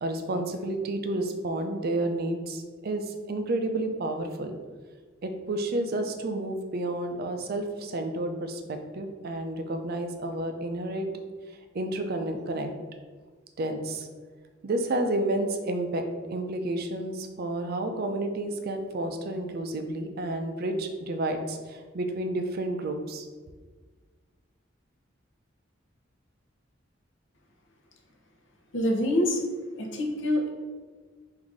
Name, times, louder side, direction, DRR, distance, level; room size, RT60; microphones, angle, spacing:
voice 1, 0.0-4.6 5.2-11.1 11.7-12.7 13.6-14.1 14.6-23.3, right 1 dB, 50° right, 6 dB, 0.5 m, -30 dB
voice 2, 28.7-29.4 29.8-30.5, left 1 dB, 65° left, 1 dB, 0.8 m, -25 dB
3.9 x 2.6 x 4.7 m, 1.5 s
head